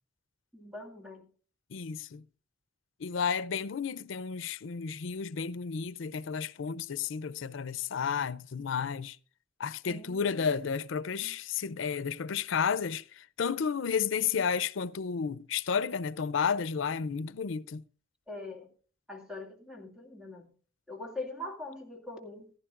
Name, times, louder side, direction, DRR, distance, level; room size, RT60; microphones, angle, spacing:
voice 1, 0.5-1.3 9.8-10.7 11.2-11.4 18.3-18.7 19.1-20.5 20.9-22.5, left 2 dB, 5° right, 2.3 m, -43 dB
voice 2, 1.7-2.2 3.0-9.2 9.6-17.8, left 6 dB, 90° left, 0.5 m, -32 dB
15.5 x 14.0 x 2.5 m
head